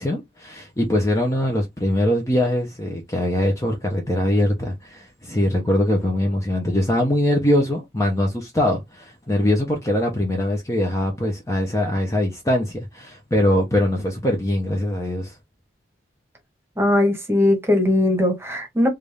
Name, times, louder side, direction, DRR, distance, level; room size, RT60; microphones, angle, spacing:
voice 1, 0.0-15.3, left 1 dB, 15° left, 0.7 m, -22 dB
voice 2, 16.8-18.9, left 1 dB, 15° right, 1.1 m, -19 dB
3.5 x 2.6 x 3.3 m
head